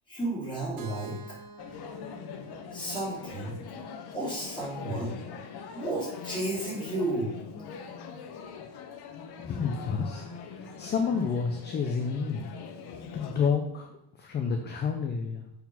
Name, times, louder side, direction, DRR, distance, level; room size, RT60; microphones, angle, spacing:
voice 1, 0.1-1.2 2.7-3.6 4.1-5.1 5.7-7.3, right 2 dB, 10° left, -7 dB, 3.1 m, -32 dB
Keyboard (musical), 0.8-4.7, right 4 dB, 85° right, 1.3 m, -49 dB
sound 1, 1.6-13.5, left 6 dB, 55° left, 0.9 m, -42 dB
voice 2, 9.4-10.3 10.6-12.5 13.1-13.9 14.2-15.4, left 6 dB, 25° left, 4 dB, 0.4 m, -29 dB
6.9 x 4.0 x 5.6 m, 0.82 s
cardioid pair, 160°, 46 cm